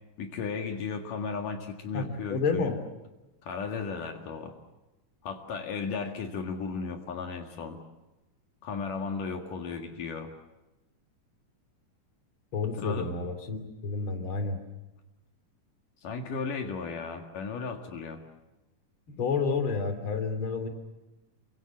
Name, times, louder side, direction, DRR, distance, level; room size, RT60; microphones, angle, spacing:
voice 1, 0.2-2.7 3.4-4.5 5.2-7.8 8.6-10.3 12.8-13.1 16.0-18.2, left 5 dB, 70° left, 4 dB, 3.4 m, -35 dB
voice 2, 1.9-2.8 12.5-14.6 19.1-20.7, left 4 dB, 40° left, 8 dB, 3.5 m, -30 dB
29.0 x 24.5 x 7.3 m, 1.0 s
omnidirectional pair, 3.9 m